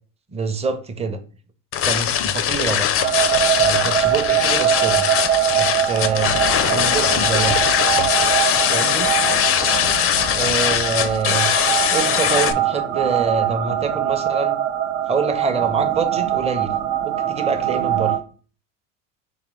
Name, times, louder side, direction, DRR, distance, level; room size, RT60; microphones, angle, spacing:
voice 1, 0.3-1.2 1.8-2.9 3.6-5.0 5.6-6.4 6.7-7.6 8.7-9.1 10.3-11.5 11.9-14.6 15.1-16.7 17.0-18.1, right 5 dB, 15° right, 7 dB, 0.6 m, -25 dB
sound 1, 1.7-12.5, left 10 dB, 35° left, 0.4 m, -20 dB
sound 2, 3.0-18.2, right 11 dB, 70° right, 0.6 m, -22 dB
3.7 x 3.3 x 3.1 m, 0.39 s
hypercardioid pair, 75°, 39 cm